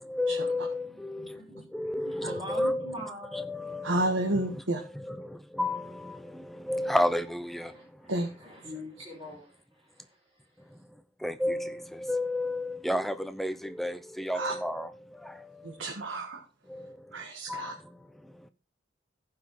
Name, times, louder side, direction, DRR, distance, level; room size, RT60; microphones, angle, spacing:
voice 1, 0.2-0.8 1.7-2.8 3.3-3.8 5.6-5.8 6.7-7.5 11.2-11.7 12.1-13.1 13.4-13.5 13.8-13.9 14.3-14.8 17.5-17.6, left 1 dB, ahead, 0.6 m, -29 dB
voice 2, 1.2-1.7 2.0-3.4 7.6-10.2, equal, 15° right, 4.9 m, -44 dB
voice 3, 3.8-4.8 8.1-8.3 14.3-14.5 15.6-16.4 17.1-17.7, right 1 dB, 85° right, 1.8 m, -30 dB
14.5 x 5.8 x 4.9 m
head